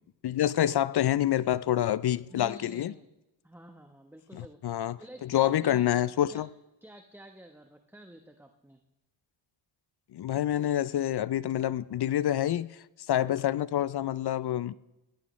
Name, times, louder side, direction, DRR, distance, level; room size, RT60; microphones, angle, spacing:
voice 1, 0.2-2.9 4.3-6.5 10.1-12.7 13.1-14.7, left 12 dB, 55° left, 0.5 m, -27 dB
voice 2, 2.3-3.1 3.4-6.4 6.8-8.8, right 1 dB, 5° right, 1.0 m, -49 dB
17.5 x 15.0 x 3.1 m
cardioid pair, 70°, 48 cm